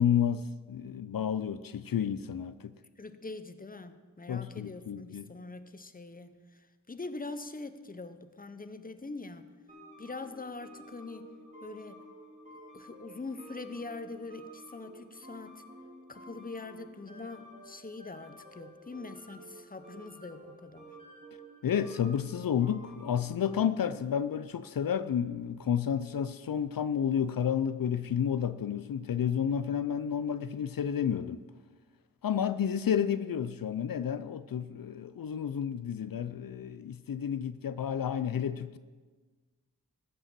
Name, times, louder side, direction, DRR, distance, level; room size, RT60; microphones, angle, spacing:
voice 1, 0.0-2.7 4.3-5.3 21.6-31.4 32.2-38.8, left 8 dB, 80° left, 0.5 m, -31 dB
voice 2, 3.0-9.5 10.0-11.3 11.6-12.0 12.7-15.6 16.1-20.9, left 3 dB, 25° left, 0.8 m, -43 dB
sound 1, 9.7-24.4, right 1 dB, 20° right, 2.1 m, -51 dB
14.0 x 5.5 x 7.5 m
wide cardioid pair, 55°, 34 cm